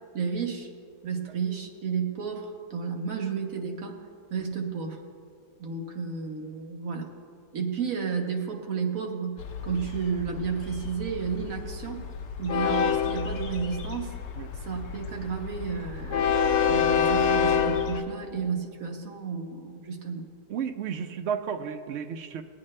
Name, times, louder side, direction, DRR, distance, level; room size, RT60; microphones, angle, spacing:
voice 1, 0.1-0.7 1.0-4.0 4.3-5.0 5.6-7.1 7.5-12.0 12.4-14.1 14.6-20.2, right 6 dB, 55° right, 1 dB, 1.5 m, -32 dB
Train, 9.4-18.0, left 7 dB, 60° left, 0.9 m, -28 dB
voice 2, 20.5-22.4, right 7 dB, 85° right, 7 dB, 0.6 m, -32 dB
19.0 x 9.4 x 3.2 m, 2.2 s
omnidirectional pair, 1.8 m